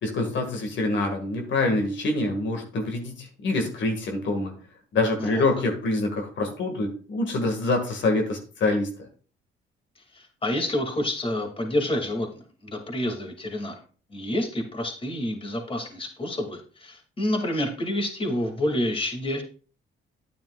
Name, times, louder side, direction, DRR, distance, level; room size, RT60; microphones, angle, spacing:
voice 1, 0.0-4.5 4.9-8.9, left 2 dB, 65° left, 3 dB, 1.9 m, -26 dB
voice 2, 10.1-13.8 14.1-19.4, left 1 dB, 25° left, 3 dB, 2.4 m, -28 dB
10.5 x 9.2 x 2.4 m, 0.39 s
cardioid pair, 90°, 20 cm